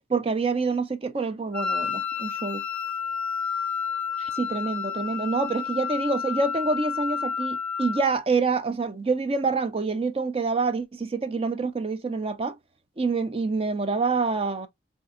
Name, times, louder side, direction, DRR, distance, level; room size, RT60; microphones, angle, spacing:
voice 1, 0.1-2.6 4.2-12.6 13.0-14.7, right 4 dB, 30° right, 0.4 m, -26 dB
Wind instrument woodwind instrument, 1.5-8.1, left 6 dB, 10° left, 0.6 m, -30 dB
4.2 x 2.8 x 2.5 m
head